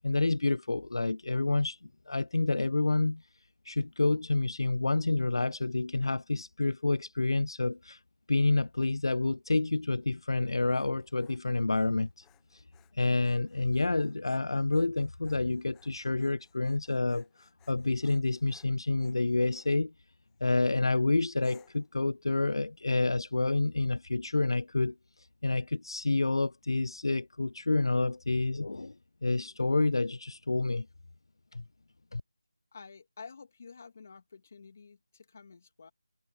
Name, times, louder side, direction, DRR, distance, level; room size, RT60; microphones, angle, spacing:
voice 1, 0.0-3.2 3.7-8.0 8.3-12.3 12.5-12.6 13.0-19.9 20.4-24.9 25.4-28.9 29.2-30.9 31.5-31.6 32.1-32.2, left 3 dB, 65° left, 0.4 m, -28 dB
Dog, 10.3-19.7 20.3-20.7 21.4-21.9, left 16 dB, 5° left, 1.1 m, -66 dB
voice 2, 32.7-35.9, left 5 dB, 30° left, 2.6 m, -50 dB
figure-of-eight pair, 175°, 3 cm